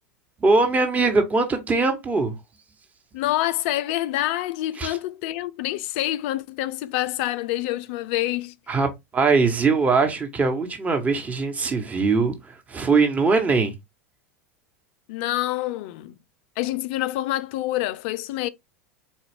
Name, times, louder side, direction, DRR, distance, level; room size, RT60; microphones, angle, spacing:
voice 1, 0.4-2.3 4.8-5.0 8.7-12.3 12.7-13.7, right 4 dB, 20° right, 1.1 m, -21 dB
voice 2, 3.1-8.5 15.1-16.2 16.6-18.5, left 15 dB, 60° left, 0.4 m, -27 dB
4.1 x 2.3 x 3.4 m
hypercardioid pair, 90°, 7 cm